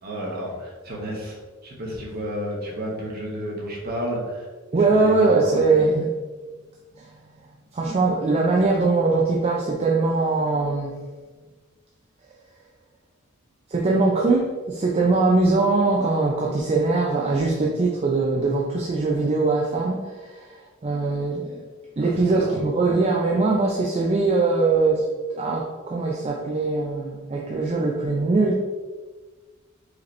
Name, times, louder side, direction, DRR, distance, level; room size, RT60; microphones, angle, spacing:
voice 1, 0.0-1.4 1.6-4.5 5.0-5.5 22.0-22.6, equal, 50° right, -2 dB, 1.1 m, -31 dB
voice 2, 4.7-6.2 7.0-7.1 7.7-10.9 13.7-21.6 22.0-25.1 25.3-28.6, right 3 dB, 30° right, -2 dB, 0.4 m, -21 dB
4.8 x 2.9 x 3.1 m, 1.4 s
head